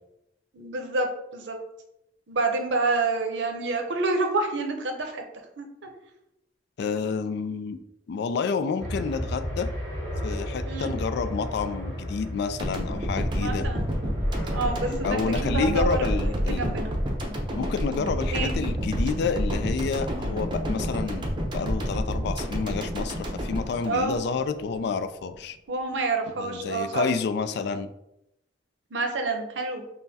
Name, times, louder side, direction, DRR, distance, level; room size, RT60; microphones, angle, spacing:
voice 1, 0.5-1.1 1.3-1.6 2.3-5.2 5.6-5.9 10.6-10.9 13.3-13.9 14.5-16.9 18.3-18.5 23.8-24.1 25.7-27.1 28.9-29.8, right 3 dB, 75° right, 4 dB, 0.6 m, -28 dB
voice 2, 6.8-7.8 8.1-9.7 10.2-13.7 14.8-16.7 17.6-25.6 26.4-27.9, left 5 dB, 65° left, 11 dB, 0.3 m, -29 dB
sound 1, 8.8-17.6, equal, 15° left, 1.0 m, -35 dB
sound 2, 12.6-24.8, equal, 25° right, 0.6 m, -29 dB
5.5 x 2.1 x 2.7 m, 0.85 s
head